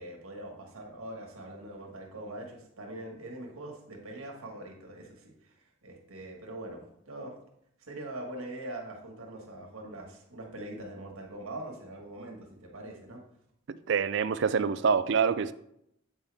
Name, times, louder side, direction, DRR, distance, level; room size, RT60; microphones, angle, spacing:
voice 1, 0.0-7.3 7.8-13.2, right 1 dB, 85° right, 1 dB, 1.7 m, -43 dB
voice 2, 13.7-15.5, right 6 dB, 55° right, 14 dB, 0.4 m, -26 dB
8.3 x 5.5 x 3.5 m, 0.75 s
head